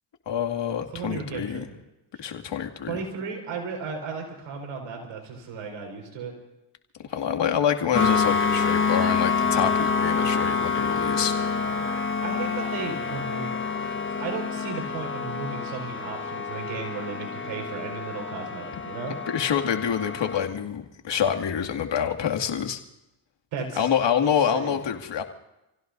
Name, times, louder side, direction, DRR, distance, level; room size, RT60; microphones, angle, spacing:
voice 1, 0.3-1.7 2.2-3.0 7.1-11.3 19.3-22.8 23.7-25.2, left 8 dB, 60° left, 4 dB, 2.4 m, -26 dB
voice 2, 0.9-1.7 2.9-6.3 7.1-7.2 12.2-19.2 23.5-23.9 24.2-24.8, right 5 dB, 80° right, 2 dB, 5.3 m, -35 dB
sound 1, 7.9-20.5, left 5 dB, 25° left, 1.6 m, -27 dB
29.5 x 16.5 x 2.7 m, 0.92 s
supercardioid pair, 65°, 49 cm